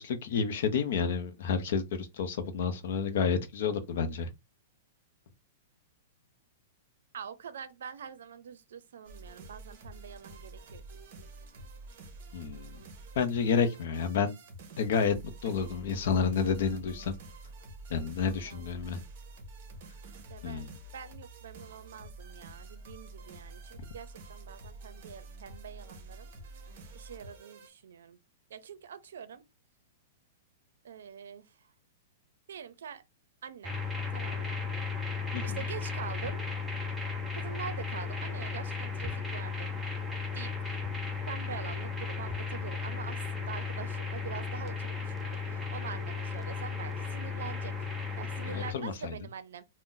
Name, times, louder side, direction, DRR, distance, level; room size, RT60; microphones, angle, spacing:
voice 1, 0.0-4.3 12.3-12.8 13.2-14.3 14.8-15.2 15.4-17.1 17.9-19.0 20.4-20.7 35.3-35.6 48.5-49.1, left 6 dB, 50° left, 0.6 m, -30 dB
voice 2, 7.1-10.8 11.2-11.3 13.8-14.1 15.4-16.6 18.4-18.6 20.3-26.3 26.9-28.2 28.5-29.4 30.8-31.6 32.5-33.0 33.4-33.7 34.1-34.6 35.4-36.4 37.4-39.7 40.3-40.8 41.3-47.7 48.2-49.7, right 7 dB, 80° right, 0.5 m, -45 dB
sound 1, 9.0-27.7, right 2 dB, 35° right, 0.8 m, -48 dB
sound 2, 33.6-48.7, left 4 dB, ahead, 0.4 m, -35 dB
2.6 x 2.0 x 3.7 m
supercardioid pair, 180°, 0 cm